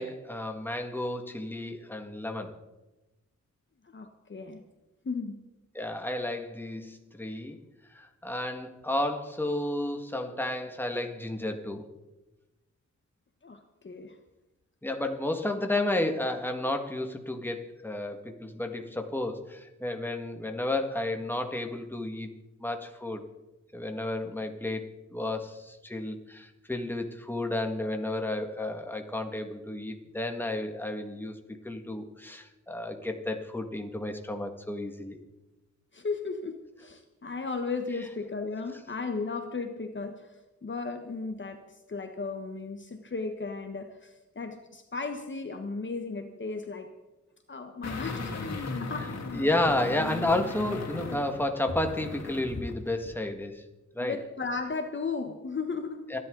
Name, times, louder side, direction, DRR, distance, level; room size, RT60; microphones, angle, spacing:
voice 1, 0.0-2.6 5.7-7.6 7.9-11.8 14.8-22.3 22.6-23.2 23.7-24.9 25.1-31.4 31.6-35.2 49.3-53.6 54.0-54.2 56.1-56.2, left 1 dB, 5° left, 4 dB, 2.0 m, -32 dB
voice 2, 3.9-4.6 5.0-5.4 13.4-14.2 35.9-40.3 40.6-41.6 41.9-46.9 47.5-49.2 54.0-56.1, left 4 dB, 40° left, 6 dB, 1.3 m, -35 dB
sound 1, 47.8-52.7 53.1-53.2, left 3 dB, 60° left, 2.9 m, -36 dB
28.5 x 11.0 x 4.0 m, 1.1 s
cardioid pair, 75°, 29 cm